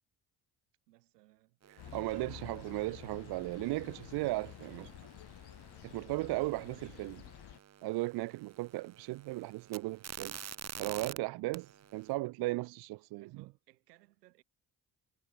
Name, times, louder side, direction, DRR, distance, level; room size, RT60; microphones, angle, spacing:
voice 1, 0.9-3.2 4.6-5.3 6.3-7.4 13.2-14.4, right 18 dB, 85° right, 6.9 m, -64 dB
sound 1, 1.6-11.2 11.5-12.1, right 9 dB, 35° right, 0.9 m, -50 dB
sound 2, 1.8-7.6, left 14 dB, 55° left, 1.1 m, -51 dB
voice 2, 1.9-4.9 5.8-7.2 7.8-10.4 10.8-13.3, right 20 dB, 55° right, 0.5 m, -36 dB
hypercardioid pair, 45°, 47 cm